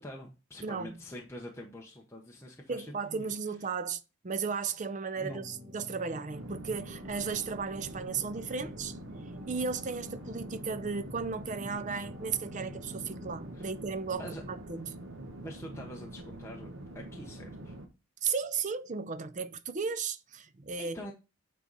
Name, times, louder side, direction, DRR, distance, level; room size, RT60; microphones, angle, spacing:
voice 1, 0.0-3.3 5.2-5.4 13.5-13.7 14.1-14.4 15.4-16.7 16.9-17.7 20.8-21.1, equal, 10° left, 0.9 m, -45 dB
voice 2, 0.6-1.0 2.7-9.0 9.5-14.9 18.2-21.0, right 5 dB, 35° right, 0.5 m, -35 dB
sound 1, 5.1-13.6, left 2 dB, 10° right, 3.0 m, -49 dB
sound 2, 6.3-17.9, right 1 dB, 60° right, 1.1 m, -45 dB
9.0 x 3.9 x 4.0 m
head